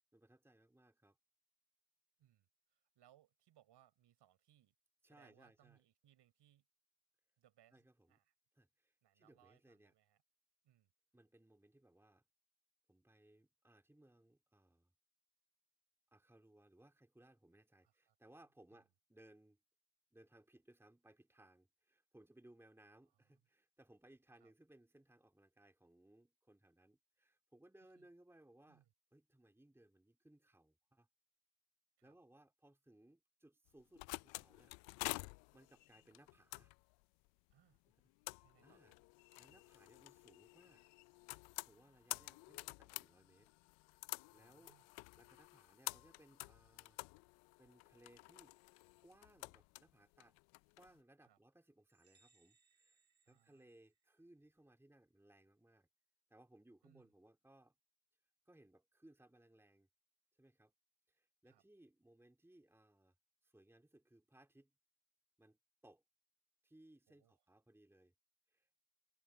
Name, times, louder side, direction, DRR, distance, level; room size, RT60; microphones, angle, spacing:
voice 1, 0.1-1.2 5.0-5.8 7.7-8.2 8.5-9.9 11.1-12.2 12.9-14.9 16.1-19.6 20.1-28.8 29.1-31.1 32.0-34.7 35.5-36.7 38.4-38.9 39.4-40.8 41.6-43.5 43.8-44.0 44.3-44.7 45.2-47.0 47.6-48.6 49.0-50.4 50.8-53.0 53.3-55.9 56.3-57.7 58.5-59.9 60.4-60.7 61.1-63.1 63.4-64.7 65.4-66.0 66.6-68.1 68.5-68.7, right 1 dB, 5° right, 2.9 m, -66 dB
voice 2, 2.2-4.7 5.0-6.7 7.4-8.3 9.0-10.2 10.6-10.9 17.8-18.2 18.7-18.8 23.1-23.4 24.4-24.5 27.8-28.1 28.6-28.9 32.0-32.2 37.5-37.8 38.4-39.0 44.3-45.4 51.2-51.4 53.3-53.7 56.8-57.1 61.4-61.6 67.1-67.3, right 12 dB, 55° right, 7.6 m, -72 dB
sound 1, 33.7-50.9, left 28 dB, 65° left, 0.6 m, -50 dB
sound 2, 51.9-54.5, right 4 dB, 35° right, 3.7 m, -76 dB
supercardioid pair, 75°, 49 cm